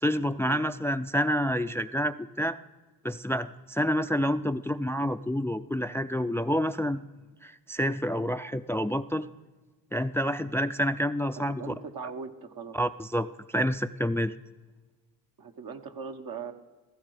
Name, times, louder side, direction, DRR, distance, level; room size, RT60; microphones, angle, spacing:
voice 1, 0.0-2.6 3.0-7.0 7.4-9.3 9.9-11.7 12.7-14.3, equal, 5° left, 12 dB, 0.4 m, -28 dB
voice 2, 11.4-12.8 15.4-16.5, right 5 dB, 70° right, 5 dB, 1.4 m, -40 dB
16.5 x 14.5 x 4.9 m, 1.2 s
cardioid pair, 80°, 36 cm